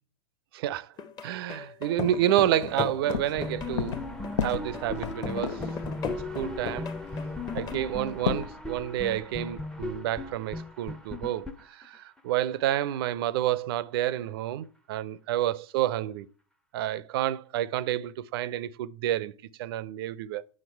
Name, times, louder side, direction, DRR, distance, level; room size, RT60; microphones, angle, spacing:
voice 1, 0.5-0.9 1.2-4.0 4.4-5.7 6.0-6.9 7.5-16.3 16.7-19.3 19.6-20.4, right 12 dB, 50° right, 0.6 m, -29 dB
sound 1, 1.0-7.7, left 6 dB, 25° left, 1.0 m, -37 dB
sound 2, 2.6-2.7 3.0-3.5 3.8-4.1 4.4-5.8 6.7-6.8 7.0-7.1 7.6-8.5, left 8 dB, 65° left, 0.6 m, -32 dB
sound 3, 3.4-12.2, left 2 dB, 5° left, 0.6 m, -37 dB
8.7 x 6.2 x 4.4 m
figure-of-eight pair, 95°, 16 cm